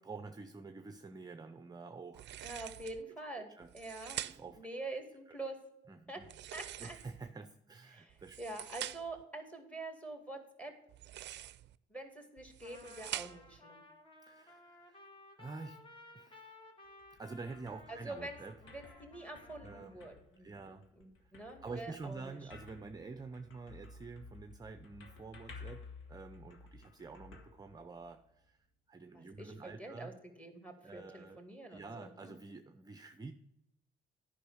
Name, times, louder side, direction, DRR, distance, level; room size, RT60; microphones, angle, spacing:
voice 1, 0.0-2.4 3.5-3.7 4.2-4.7 5.3-5.4 5.9-6.3 6.8-8.4 14.3-15.0 15.4-15.8 16.1-16.6 17.2-18.6 19.6-20.0 20.4-20.9 21.2-21.3 21.6-30.1 30.8-31.4 31.7-33.3, right 4 dB, 20° right, 9 dB, 0.6 m, -48 dB
sound 1, 2.1-3.0 3.6-4.6 6.2-7.3 8.1-9.2 10.9-11.8 12.4-13.6, right 12 dB, 65° right, 0.5 m, -45 dB
voice 2, 2.4-4.2 4.6-5.6 6.1-6.2 6.5-7.0 7.9-10.7 11.9-13.8 17.9-18.4 18.6-20.5 21.0-22.4 29.1-30.1 30.4-32.3, right 2 dB, 5° left, 5 dB, 2.2 m, -46 dB
Trumpet, 12.6-20.0, left 2 dB, 25° left, 1.9 m, -58 dB
sound 2, 16.8-28.3, left 4 dB, 80° left, 1.7 m, -55 dB
10.0 x 5.5 x 6.3 m, 0.86 s
cardioid pair, 90°, 20 cm